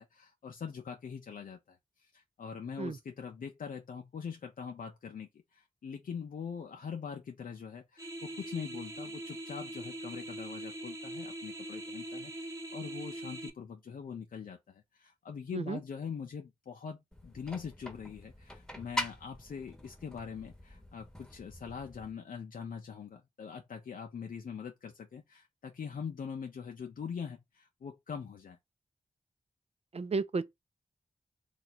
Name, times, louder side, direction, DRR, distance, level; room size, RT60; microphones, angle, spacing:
voice 1, 0.0-28.6, left 6 dB, 70° left, 0.5 m, -43 dB
sound 1, 8.0-13.5, right 1 dB, 20° right, 1.0 m, -42 dB
sound 2, 17.1-22.1, left 1 dB, 5° left, 1.1 m, -43 dB
voice 2, 29.9-30.4, right 4 dB, 45° right, 0.5 m, -32 dB
2.8 x 2.4 x 4.1 m
cardioid pair, 45°, 15 cm